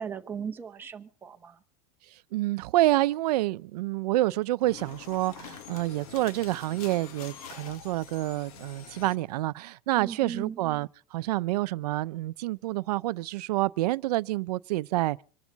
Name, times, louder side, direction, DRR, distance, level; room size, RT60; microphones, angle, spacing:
voice 1, 0.0-1.6 10.0-10.6, right 7 dB, 10° right, 0.9 m, -37 dB
voice 2, 2.3-15.2, right 17 dB, 75° right, 0.6 m, -28 dB
sound 1, 4.6-9.2, left 8 dB, 65° left, 1.5 m, -45 dB
25.5 x 12.0 x 4.0 m
supercardioid pair, 180°, 21 cm